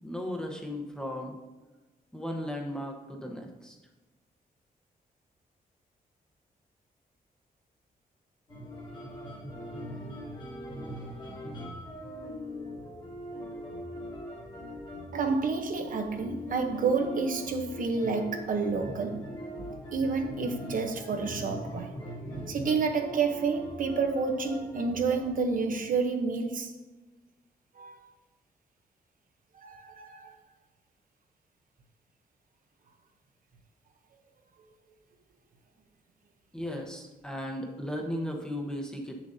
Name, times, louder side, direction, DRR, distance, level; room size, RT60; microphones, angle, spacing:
voice 1, 0.0-1.4 2.1-3.8 36.5-39.2, equal, 5° left, 0.9 m, -36 dB
sound 1, 8.5-25.8, equal, 30° left, 1.4 m, -41 dB
voice 2, 15.1-19.3 19.6-21.9 22.3-26.7 27.8-28.0 29.6-30.4, right 4 dB, 60° right, 0.9 m, -29 dB
8.8 x 7.2 x 2.7 m
wide cardioid pair, 145°, 16 cm